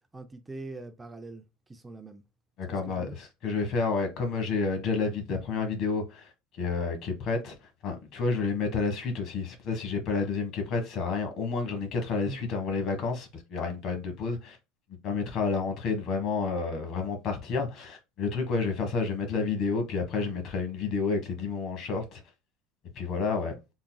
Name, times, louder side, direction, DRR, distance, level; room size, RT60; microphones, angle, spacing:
voice 1, 0.1-2.2 2.7-3.2 12.2-12.5, right 3 dB, 15° right, 0.5 m, -43 dB
voice 2, 2.6-14.6 14.9-22.2 22.9-23.5, left 4 dB, 55° left, 1.4 m, -30 dB
4.0 x 3.7 x 2.2 m
supercardioid pair, 115°, 0 cm